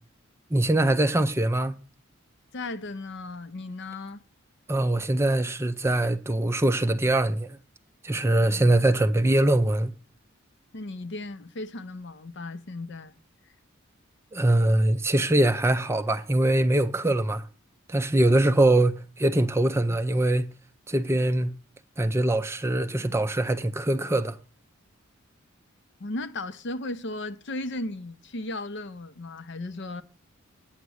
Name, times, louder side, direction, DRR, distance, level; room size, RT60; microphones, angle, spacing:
voice 1, 0.5-1.7 4.7-7.6 8.0-9.9 14.3-17.4 17.9-20.5 20.9-21.5 22.0-24.4, right 1 dB, 15° right, 0.5 m, -23 dB
voice 2, 2.5-4.2 8.4-8.7 10.7-13.2 26.0-30.0, left 2 dB, 55° left, 0.7 m, -36 dB
9.5 x 7.2 x 6.3 m
head